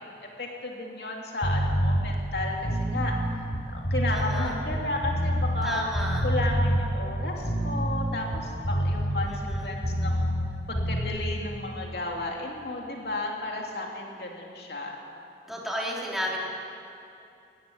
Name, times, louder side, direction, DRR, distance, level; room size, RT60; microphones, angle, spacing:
voice 1, 0.2-3.1 3.7-5.9 6.2-10.3 10.7-15.0, left 2 dB, 65° left, 0 dB, 2.9 m, -33 dB
sound 1, 1.4-2.0 2.5-5.7 6.0-6.8 7.3-10.5 10.8-11.0, equal, 45° left, 3.3 m, -26 dB
voice 2, 4.1-4.5 5.6-6.3 9.3-9.7 15.5-16.4, equal, ahead, -3 dB, 3.1 m, -32 dB
19.0 x 15.0 x 9.2 m, 2.8 s
head